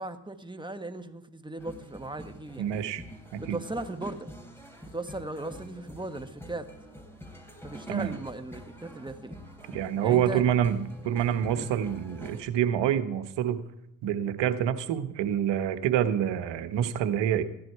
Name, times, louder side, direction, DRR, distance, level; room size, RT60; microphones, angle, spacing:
voice 1, 0.0-2.7 3.4-4.3 4.9-6.7 7.6-9.4 10.0-10.4 11.5-11.7, right 2 dB, 10° right, 7 dB, 1.6 m, -38 dB
sound 1, 1.6-12.4, equal, 5° left, 3.6 m, -45 dB
voice 2, 2.6-3.0 3.3-3.6 7.9-8.1 9.7-13.6 14.0-17.4, right 10 dB, 80° right, 10 dB, 1.2 m, -27 dB
15.0 x 10.5 x 4.7 m, 0.86 s
hypercardioid pair, 45°, 42 cm